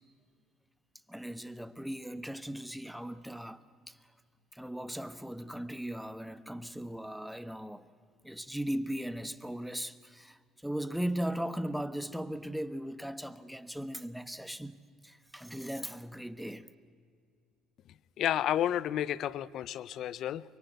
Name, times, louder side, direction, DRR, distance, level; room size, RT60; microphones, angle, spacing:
voice 1, 1.1-4.1 4.5-7.9 8.2-14.8 15.0-16.7, equal, ahead, 1.1 m, -38 dB
voice 2, 18.2-20.4, left 11 dB, 60° left, 0.7 m, -31 dB
24.0 x 22.5 x 8.1 m
supercardioid pair, 85°, 0 cm